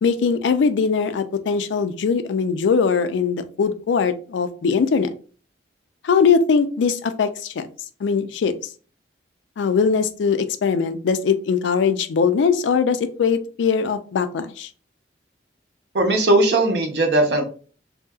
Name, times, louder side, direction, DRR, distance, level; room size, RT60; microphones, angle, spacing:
voice 1, 0.0-5.1 6.0-7.6 8.0-8.5 9.6-14.7, left 5 dB, 85° left, 11 dB, 0.3 m, -21 dB
voice 2, 15.9-17.5, right 2 dB, 65° right, 4 dB, 0.7 m, -18 dB
2.7 x 2.7 x 2.3 m, 0.40 s
head